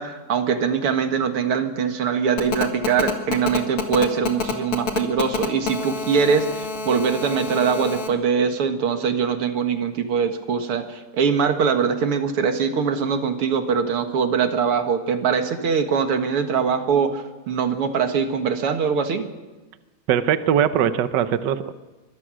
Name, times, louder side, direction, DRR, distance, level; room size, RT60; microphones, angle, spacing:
voice 1, 0.0-19.3, right 6 dB, 85° right, 7 dB, 2.5 m, -22 dB
Telephone, 2.4-8.1, left 5 dB, 80° left, 3.0 m, -27 dB
voice 2, 20.1-21.7, right 9 dB, 60° right, 11 dB, 1.4 m, -21 dB
25.0 x 21.5 x 6.3 m, 1.2 s
omnidirectional pair, 2.4 m